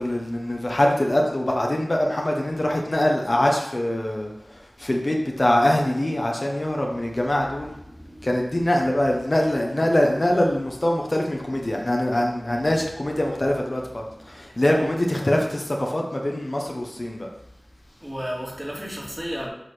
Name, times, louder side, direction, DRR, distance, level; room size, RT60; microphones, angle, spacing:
voice 1, 0.0-7.7 8.2-17.3, left 1 dB, 45° left, 0 dB, 1.2 m, -23 dB
voice 2, 7.6-9.0 10.2-10.4 11.5-11.6 12.5-13.1 13.7-15.0 18.0-19.5, equal, 15° right, -4 dB, 2.7 m, -36 dB
8.0 x 3.9 x 6.3 m, 0.85 s
wide cardioid pair, 40°, 0 cm